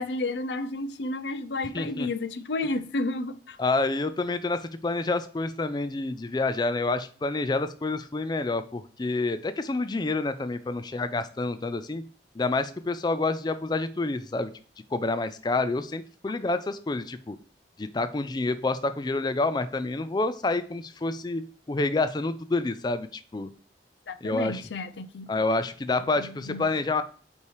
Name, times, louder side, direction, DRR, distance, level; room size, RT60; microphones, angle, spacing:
voice 1, 0.0-3.6 24.1-25.3 26.2-26.7, left 2 dB, 80° left, 0.6 m, -31 dB
voice 2, 1.7-2.1 3.6-12.0 12.4-14.5 14.9-17.4 17.8-23.5 24.2-24.6 25.3-27.0, left 3 dB, 25° left, 0.4 m, -28 dB
5.6 x 4.6 x 4.7 m
head